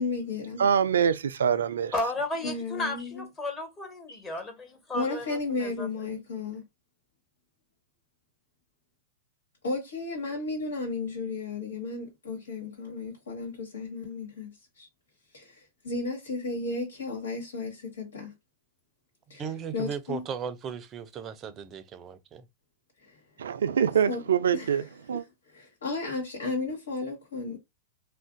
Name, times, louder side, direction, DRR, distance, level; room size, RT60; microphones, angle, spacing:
voice 1, 0.0-0.7 2.4-3.2 4.1-4.2 4.9-6.6 9.6-14.9 15.3-18.3 19.3-19.4 19.7-20.2 23.0-23.2 24.1-24.2 24.5-24.7 25.1-25.2 25.5-27.6, left 3 dB, 85° left, 1.3 m, -34 dB
voice 2, 0.6-1.9 23.4-25.2, right 8 dB, 80° right, 0.4 m, -25 dB
voice 3, 1.9-6.1, left 2 dB, 20° left, 1.3 m, -34 dB
voice 4, 19.4-22.5, right 7 dB, 30° right, 0.6 m, -36 dB
2.5 x 2.2 x 3.7 m
hypercardioid pair, 115°, 0 cm